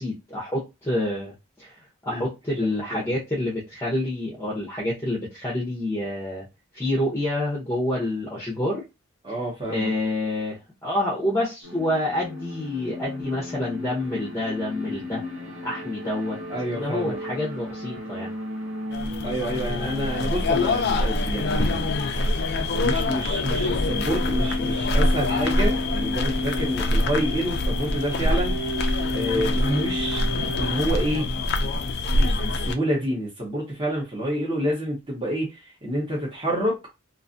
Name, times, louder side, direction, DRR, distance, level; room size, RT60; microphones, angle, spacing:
voice 1, 0.0-6.5 6.7-8.8 9.7-15.2 15.6-16.4 16.7-18.3 26.6-26.8, left 1 dB, 10° left, 0.7 m, -28 dB
voice 2, 2.6-3.1 9.2-9.9 16.5-17.2 19.2-22.0 22.8-28.5 29.1-31.3 32.1-35.5 35.8-36.8, equal, 20° right, 0.8 m, -28 dB
sound 1, 11.6-30.8, left 1 dB, 75° right, 1.4 m, -33 dB
sound 2, 18.9-32.7, left 2 dB, 50° left, 0.3 m, -25 dB
2.5 x 2.3 x 2.5 m
head